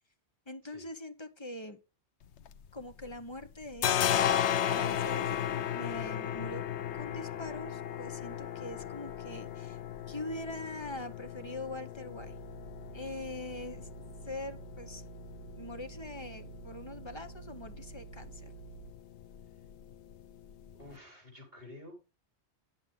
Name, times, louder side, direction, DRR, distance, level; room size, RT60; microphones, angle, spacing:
voice 1, 0.5-1.8 2.7-4.0 4.6-6.6 6.9-9.8 10.1-12.3 12.9-13.9 14.2-15.0 15.6-18.5, left 1 dB, 25° left, 7 dB, 1.0 m, -43 dB
sound 1, 2.2-3.2 3.4-20.9, left 10 dB, 90° left, 1.0 m, -36 dB
sound 2, 12.2-18.9, right 14 dB, 75° right, 1.8 m, -50 dB
voice 2, 20.7-22.0, left 1 dB, 60° right, 1 dB, 4.8 m, -50 dB
9.8 x 8.0 x 3.7 m, 0.31 s
omnidirectional pair, 1.1 m